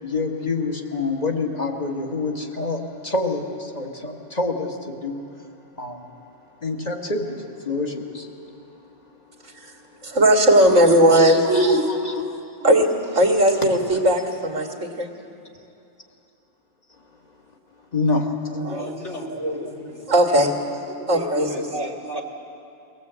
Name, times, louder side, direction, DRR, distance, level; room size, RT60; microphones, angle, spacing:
voice 1, 0.0-5.2 5.8-6.1 6.6-8.3 11.5-12.3 17.9-18.6, left 3 dB, 35° left, 2 dB, 1.8 m, -27 dB
voice 2, 10.0-11.9 12.6-15.1 18.5-19.0 19.4-19.7 20.1-22.2, right 1 dB, 90° right, 2 dB, 2.4 m, -19 dB
voice 3, 18.7-20.1 21.2-22.2, left 1 dB, 70° left, -1 dB, 2.7 m, -37 dB
23.0 x 17.5 x 8.1 m, 2.7 s
omnidirectional pair, 1.2 m